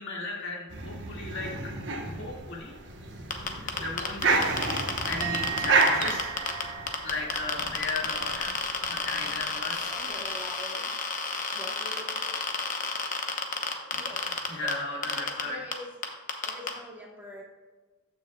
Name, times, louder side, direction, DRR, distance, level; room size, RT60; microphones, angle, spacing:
voice 1, 0.0-1.7 2.1-2.7 3.6-4.6 5.1-6.3 7.0-10.0 14.0-15.6, left 3 dB, 55° left, -2 dB, 1.9 m, -36 dB
sound 1, 0.7-9.8, right 3 dB, 55° right, 1.0 m, -31 dB
sound 2, 3.3-6.6 6.9-14.7 15.0-15.4 15.7-15.8 16.0-16.7, left 5 dB, 35° left, 0.9 m, -30 dB
voice 2, 3.5-3.9 9.9-10.9 11.5-12.1 13.9-14.2 14.6-15.9 16.4-17.4, left 1 dB, 10° right, -2 dB, 1.0 m, -43 dB
Musical instrument, 5.2-8.6 8.9-9.3, right 9 dB, 80° right, 1.0 m, -39 dB
14.5 x 6.3 x 2.3 m, 1.3 s
head